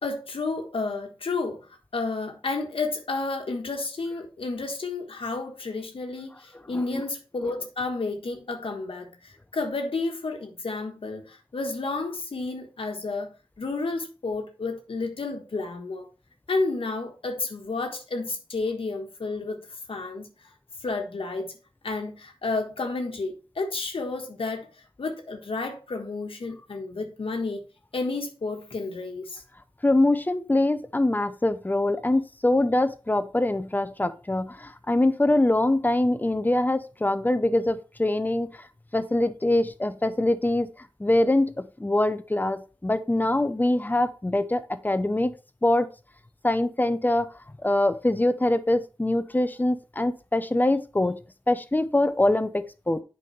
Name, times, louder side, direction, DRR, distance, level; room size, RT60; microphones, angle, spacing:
voice 1, 0.0-1.7 1.9-13.3 13.6-16.1 16.5-19.6 19.9-20.3 20.8-21.5 21.8-24.7 25.0-27.6 27.9-29.4, left 3 dB, 85° left, 1.3 m, -31 dB
voice 2, 29.8-38.5 38.9-40.7 41.0-45.3 45.6-45.9 46.4-47.3 47.6-51.2 51.5-53.0, left 1 dB, 20° left, 0.7 m, -24 dB
8.2 x 5.4 x 3.2 m
wide cardioid pair, 85°, 9 cm